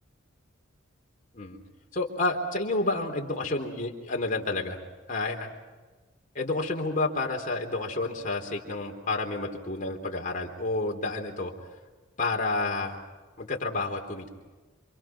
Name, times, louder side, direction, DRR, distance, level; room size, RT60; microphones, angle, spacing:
voice 1, 1.9-4.8 5.1-5.5 6.3-11.5 12.2-13.0 13.4-14.3, left 2 dB, 40° left, 0 dB, 3.7 m, -30 dB
28.0 x 26.0 x 6.2 m, 1.3 s
head